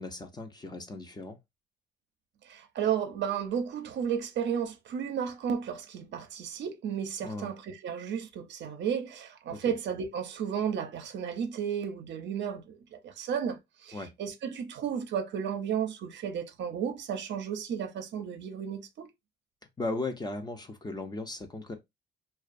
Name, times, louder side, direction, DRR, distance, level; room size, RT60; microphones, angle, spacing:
voice 1, 0.0-1.4 7.2-7.5 9.5-9.7 13.9-14.1 19.8-21.7, left 2 dB, 20° left, 0.6 m, -37 dB
voice 2, 2.4-19.1, right 8 dB, 65° right, 0.5 m, -33 dB
2.4 x 2.2 x 2.4 m
cardioid pair, 90°, 20 cm